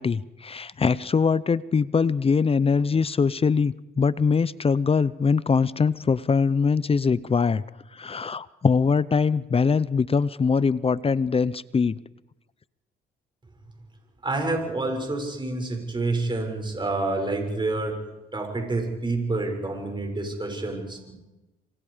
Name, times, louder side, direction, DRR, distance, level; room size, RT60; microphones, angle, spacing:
voice 1, 0.0-7.6 7.9-12.0, left 5 dB, 30° left, 19 dB, 0.7 m, -22 dB
voice 2, 14.2-18.0 18.3-21.1, right 2 dB, 25° right, 3 dB, 6.7 m, -28 dB
27.0 x 24.5 x 5.1 m, 1.1 s
cardioid pair, 90°, 20 cm